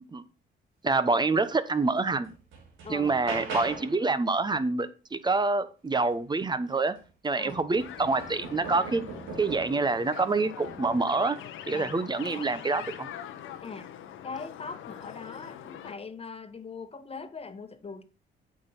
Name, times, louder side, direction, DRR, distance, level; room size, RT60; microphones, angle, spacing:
voice 1, 0.8-2.3 2.9-7.0 7.2-9.1 9.4-11.4 11.7-13.1, right 3 dB, 20° right, 0.9 m, -26 dB
sound 1, 1.7-1.8 2.2-4.1 6.4-6.5 7.0-9.9 10.6-11.2 12.2-12.5, right 3 dB, 90° right, 2.9 m, -41 dB
sound 2, 7.8-15.9, left 10 dB, 90° left, 1.1 m, -43 dB
voice 2, 11.7-12.5 13.6-13.9 14.2-18.0, left 4 dB, 30° left, 1.3 m, -41 dB
8.5 x 5.3 x 5.7 m
cardioid pair, 90°, 20 cm